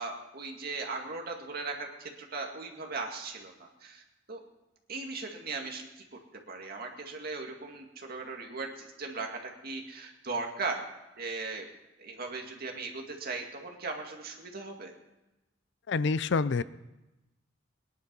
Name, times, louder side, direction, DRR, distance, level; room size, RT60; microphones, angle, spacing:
voice 1, 0.0-4.0 4.3-4.4 4.9-5.9 6.5-10.8 11.2-11.7 12.0-14.9, right 3 dB, 55° right, 2 dB, 2.2 m, -38 dB
voice 2, 15.9-16.6, left 4 dB, 65° left, 16 dB, 0.5 m, -27 dB
20.0 x 11.0 x 5.4 m, 1.0 s
head